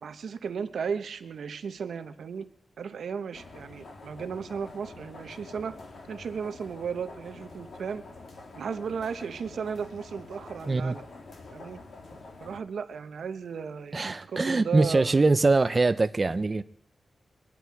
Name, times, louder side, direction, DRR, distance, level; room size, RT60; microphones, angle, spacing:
voice 1, 0.0-2.5 2.8-5.7 6.1-8.0 8.5-11.0 11.5-11.8 12.4-15.2, right 6 dB, 85° right, 0.9 m, -35 dB
sound 1, 3.3-12.6, left 3 dB, 70° left, 2.4 m, -47 dB
voice 2, 10.7-11.0 13.9-16.6, right 3 dB, 30° right, 0.4 m, -23 dB
22.5 x 10.0 x 4.6 m
wide cardioid pair, 140°, 0 cm